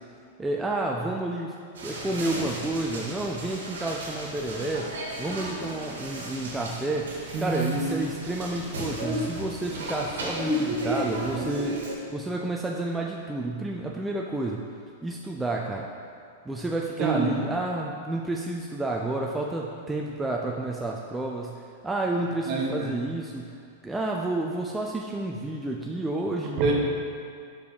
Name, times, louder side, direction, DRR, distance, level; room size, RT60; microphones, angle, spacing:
voice 1, 0.4-1.6 1.8-4.9 5.2-7.1 7.4-14.6 15.0-15.9 16.5-23.6 23.8-26.6, right 2 dB, 10° right, -1 dB, 0.4 m, -30 dB
sound 1, 1.7-11.9, equal, 85° right, 1.4 m, -34 dB
voice 2, 7.3-8.0 17.0-17.4 22.5-22.9 26.6-26.7, right 3 dB, 45° right, -1 dB, 1.2 m, -26 dB
5.0 x 4.9 x 4.8 m, 2.3 s
hypercardioid pair, 125°, 0 cm